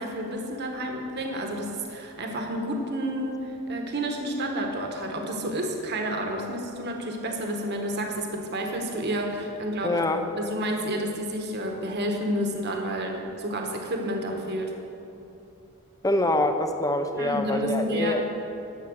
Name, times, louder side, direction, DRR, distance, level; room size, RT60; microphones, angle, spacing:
voice 1, 0.0-10.0 10.3-14.7 17.2-18.2, right 1 dB, 50° right, 2 dB, 1.2 m, -30 dB
voice 2, 9.8-10.2 16.0-18.2, left 1 dB, 15° left, 7 dB, 0.6 m, -25 dB
11.0 x 7.3 x 6.4 m, 2.8 s
head